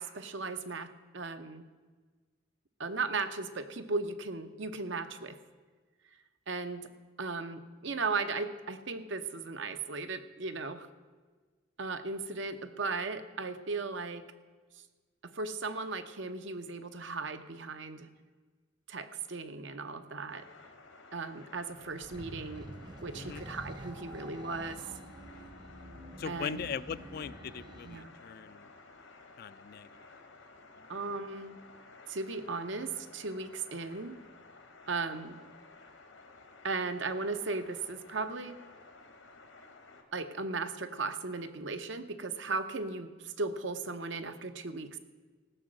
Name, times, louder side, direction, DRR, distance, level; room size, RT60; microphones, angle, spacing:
voice 1, 0.0-1.6 2.8-5.4 6.5-6.9 7.2-10.9 11.8-14.2 15.2-18.1 18.9-20.5 21.1-22.7 23.0-24.8 26.2-26.6 27.8-28.1 30.9-31.6 32.1-34.2 34.9-35.4 36.6-38.6 40.1-45.0, right 3 dB, 70° right, 9 dB, 0.8 m, -36 dB
sound 1, 20.3-40.0, left 3 dB, 85° left, 1.6 m, -55 dB
sound 2, 21.8-28.1, right 1 dB, 20° right, 0.7 m, -47 dB
voice 2, 26.2-28.6 29.4-29.9, left 7 dB, 50° left, 17 dB, 0.3 m, -40 dB
15.5 x 6.1 x 7.7 m, 1.4 s
head